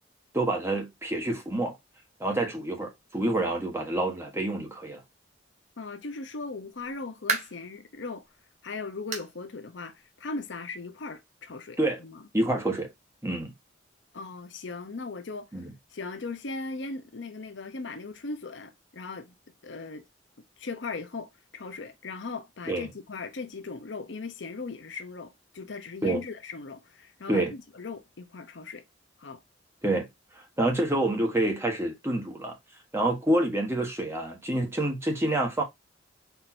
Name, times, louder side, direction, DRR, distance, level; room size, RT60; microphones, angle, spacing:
voice 1, 0.3-1.8 2.2-5.0 11.8-12.0 12.3-12.9 13.2-13.5 15.5-15.6 22.7-22.9 26.0-26.2 27.3-27.5 29.8-30.1 30.6-32.5 32.9-35.6, right 1 dB, 15° right, 1.3 m, -27 dB
voice 2, 5.8-8.3 8.6-12.3 14.1-15.6 15.9-19.3 19.6-20.0 20.6-28.8 29.2-29.4, left 3 dB, 70° left, 0.7 m, -38 dB
sound 1, 6.7-7.7 8.2-8.3 9.1-9.4 9.7-9.8 10.3-10.4 11.5-11.6, right 5 dB, 35° right, 1.0 m, -32 dB
4.5 x 2.6 x 4.3 m
head